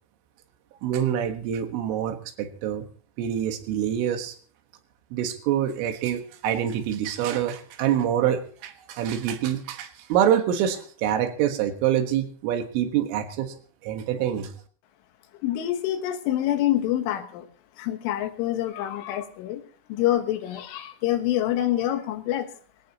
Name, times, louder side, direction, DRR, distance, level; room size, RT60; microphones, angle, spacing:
voice 1, 0.8-2.9 3.2-4.4 5.1-13.6 13.8-14.5, right 10 dB, 85° right, 6 dB, 4.0 m, -26 dB
voice 2, 15.4-17.5 17.8-19.6 19.9-22.5, left 13 dB, 80° left, 8 dB, 3.7 m, -26 dB
21.5 x 17.5 x 2.9 m, 0.43 s
omnidirectional pair, 5.6 m